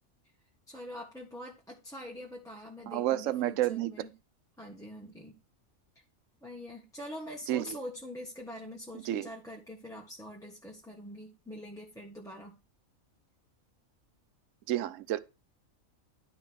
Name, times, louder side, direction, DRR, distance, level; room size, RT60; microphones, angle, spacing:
voice 1, 0.7-4.1 4.6-5.4 6.4-12.6, equal, ahead, 1.4 m, -44 dB
voice 2, 2.9-4.1 7.5-7.8 9.1-9.3 14.7-15.2, right 13 dB, 70° right, 1.0 m, -30 dB
11.5 x 4.2 x 6.3 m
omnidirectional pair, 1.4 m